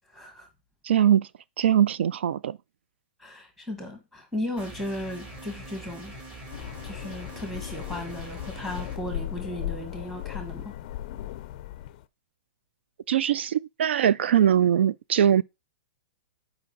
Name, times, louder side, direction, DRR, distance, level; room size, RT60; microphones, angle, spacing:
voice 1, 0.1-0.5 3.2-6.1 6.8-10.7, left 1 dB, 5° right, 1.6 m, -36 dB
voice 2, 0.8-1.3 1.6-2.6 13.1-15.4, right 9 dB, 75° right, 0.4 m, -21 dB
sound 1, 4.6-9.0, right 2 dB, 20° right, 2.2 m, -43 dB
sound 2, 6.5-12.0, left 13 dB, 35° left, 0.4 m, -37 dB
9.3 x 5.2 x 3.9 m
hypercardioid pair, 170°, 6 cm